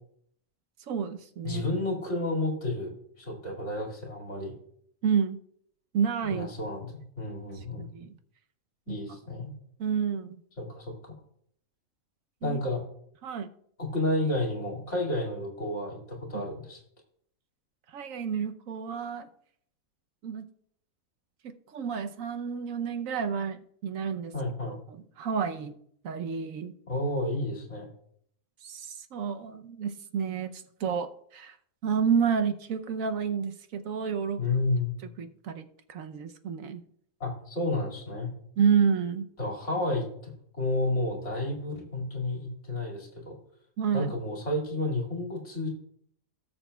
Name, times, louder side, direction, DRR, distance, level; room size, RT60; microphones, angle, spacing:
voice 1, 0.9-1.6 5.0-5.4 5.9-6.5 7.8-8.1 8.9-9.0 9.8-10.4 12.4-12.6 13.2-13.5 16.3-16.5 17.9-19.3 20.2-20.5 21.4-24.3 24.9-25.8 26.0-26.7 28.6-31.6 31.8-34.4 35.2-36.8 38.6-39.3 43.8-44.1, right 6 dB, 75° right, 8 dB, 1.1 m, -30 dB
voice 2, 1.4-2.9 3.2-4.5 6.3-7.9 8.9-9.5 10.6-11.1 12.4-12.8 13.8-16.8 24.3-24.8 26.9-27.9 34.4-34.9 37.2-38.3 39.4-43.4 43.9-45.7, left 2 dB, 55° left, 0 dB, 2.5 m, -31 dB
17.5 x 7.1 x 2.3 m, 0.66 s
omnidirectional pair, 1.5 m